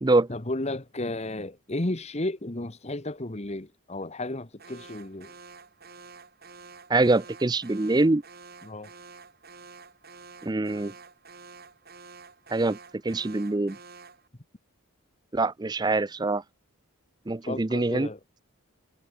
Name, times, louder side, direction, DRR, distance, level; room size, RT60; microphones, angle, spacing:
voice 1, 0.3-5.3 8.6-8.9 17.5-18.2, left 2 dB, 30° left, 1.2 m, -33 dB
Alarm, 4.6-14.3, right 4 dB, 45° right, 4.7 m, -49 dB
voice 2, 6.9-8.2 10.4-10.9 12.5-12.8 13.0-13.8 15.3-16.4 17.3-18.1, right 2 dB, 20° right, 0.5 m, -24 dB
head